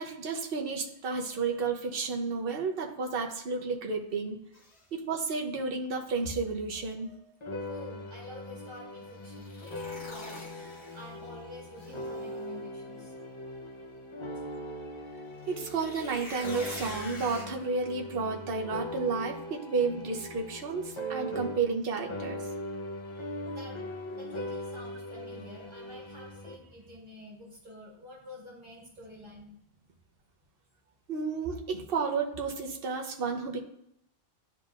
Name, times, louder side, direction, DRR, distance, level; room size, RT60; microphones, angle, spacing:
voice 1, 0.0-4.4 4.9-7.2 15.5-22.4 31.1-33.6, right 4 dB, 65° right, 1 dB, 1.0 m, -32 dB
sound 1, 4.5-4.8 9.2-11.3 11.8-12.4 15.4-17.4, left 1 dB, 60° left, 1.3 m, -45 dB
sound 2, 7.4-21.8 22.1-26.5, left 1 dB, 30° left, 0.7 m, -40 dB
voice 2, 7.6-13.1 23.1-23.8 24.1-29.5, left 1 dB, 50° right, -5 dB, 1.9 m, -49 dB
10.5 x 3.6 x 2.5 m, 0.76 s
omnidirectional pair, 1.1 m